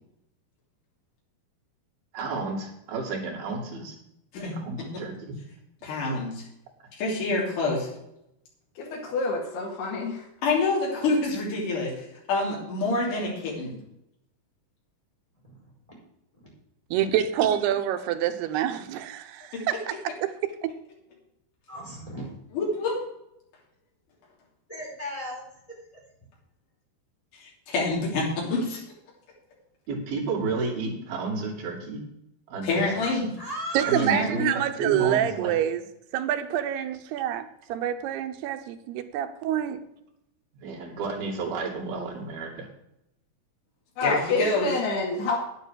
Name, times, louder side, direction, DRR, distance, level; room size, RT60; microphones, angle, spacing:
voice 1, 2.1-3.9 4.5-5.3 29.9-32.0 32.5-32.9 33.9-34.4 34.8-35.5 40.6-42.7, right 3 dB, 70° right, -2 dB, 4.4 m, -31 dB
voice 2, 4.3-5.0 5.8-6.4 7.0-7.9 10.4-13.8 19.5-19.6 22.5-23.1 27.7-28.8 32.6-33.3 34.1-34.5 44.0-44.7, left 3 dB, 55° left, -4 dB, 4.5 m, -27 dB
voice 3, 8.8-10.3 44.0-45.4, left 3 dB, 85° left, -4 dB, 3.9 m, -28 dB
voice 4, 16.9-19.9 20.2-20.7 33.7-35.8 36.1-39.8, right 11 dB, 90° right, 8 dB, 3.0 m, -27 dB
voice 5, 21.7-22.3 24.7-25.4 33.0-33.1 33.4-34.1, right 1 dB, 10° left, -3 dB, 4.4 m, -35 dB
9.6 x 9.5 x 6.4 m, 0.82 s
omnidirectional pair, 4.5 m